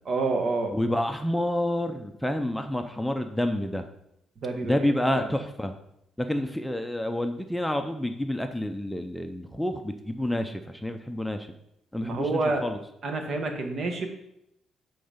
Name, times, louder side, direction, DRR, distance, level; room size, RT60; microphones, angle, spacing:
voice 1, 0.1-0.7 4.4-4.8 5.1-5.3 12.0-12.6 13.0-14.1, right 3 dB, 55° right, 4 dB, 1.2 m, -28 dB
voice 2, 0.7-3.8 4.6-5.7 6.2-11.5 11.9-12.8, left 1 dB, 5° left, 6 dB, 0.5 m, -28 dB
7.6 x 3.9 x 5.1 m, 0.80 s
cardioid pair, 90°, 0 cm